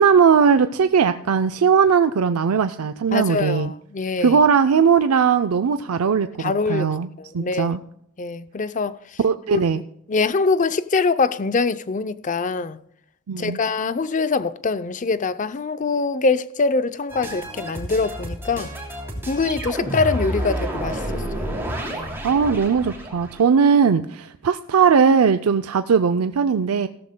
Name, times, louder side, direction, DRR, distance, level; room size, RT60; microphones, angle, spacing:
voice 1, 0.0-3.7 4.2-7.1 7.3-7.8 9.2-9.8 13.3-13.6 22.2-26.9, right 6 dB, 90° right, 0.5 m, -18 dB
voice 2, 3.1-4.4 6.4-6.9 7.2-7.8 8.2-9.0 9.5-9.6 10.1-12.8 13.4-18.7 19.3-21.6 21.9-22.2, left 4 dB, 35° left, 0.5 m, -23 dB
sound 1, 17.1-23.4, equal, 10° right, 3.0 m, -30 dB
16.5 x 14.0 x 2.2 m
head